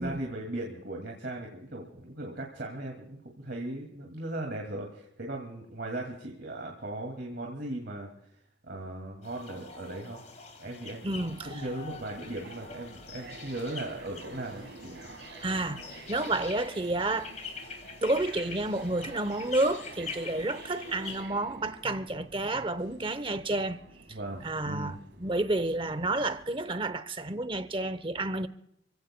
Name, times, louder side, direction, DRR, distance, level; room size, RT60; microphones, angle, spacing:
voice 1, 0.0-8.1 8.6-10.2 10.6-11.1 11.4-15.0 24.1-25.0, right 1 dB, 60° right, 2.3 m, -38 dB
sound 1, 9.2-21.2, left 4 dB, 35° left, 2.7 m, -45 dB
voice 2, 11.0-11.4 15.3-15.8 16.1-17.3 18.0-23.8 24.4-28.5, right 2 dB, 25° right, 0.8 m, -30 dB
sound 2, 11.4-26.4, right 3 dB, 80° right, 1.8 m, -50 dB
30.0 x 16.0 x 2.2 m
head